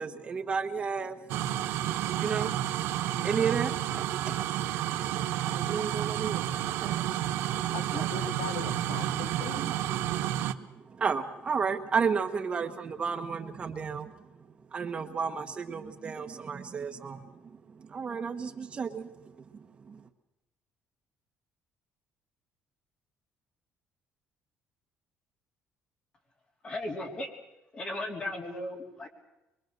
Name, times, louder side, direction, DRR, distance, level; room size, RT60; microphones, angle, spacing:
voice 1, 0.0-4.9 5.3-8.1 9.5-14.2 14.7-20.0, right 6 dB, 25° right, 6 dB, 1.2 m, -34 dB
sound 1, 1.3-10.5, right 12 dB, 85° right, 1.1 m, -31 dB
voice 2, 7.7-9.8, left 12 dB, 85° left, 13 dB, 0.8 m, -40 dB
voice 3, 26.6-27.3 27.7-29.1, left 1 dB, 25° left, 2 dB, 3.4 m, -36 dB
24.0 x 23.0 x 6.6 m, 0.96 s
cardioid pair, 175°, 4 cm